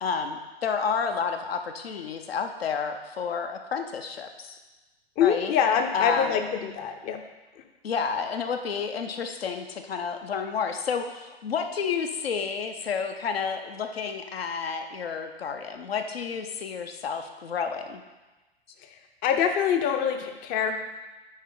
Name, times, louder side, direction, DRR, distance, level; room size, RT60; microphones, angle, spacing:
voice 1, 0.0-4.6 5.2-5.5 5.9-6.4 7.8-18.0, left 6 dB, 70° left, 6 dB, 0.8 m, -30 dB
voice 2, 5.2-7.2 18.8-18.9 19.2-20.7, left 8 dB, 30° left, 6 dB, 0.6 m, -24 dB
9.9 x 4.4 x 3.8 m, 1.1 s
figure-of-eight pair, 100°, 31 cm